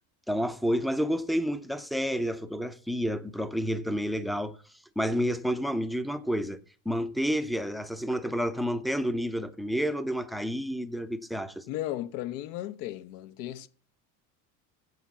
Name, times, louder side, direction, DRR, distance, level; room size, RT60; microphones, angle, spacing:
voice 1, 0.3-4.6 5.0-6.6 6.9-11.6, equal, ahead, 0.5 m, -29 dB
voice 2, 11.7-13.7, left 14 dB, 75° left, 1.1 m, -35 dB
8.2 x 7.4 x 7.3 m
supercardioid pair, 130°, 43 cm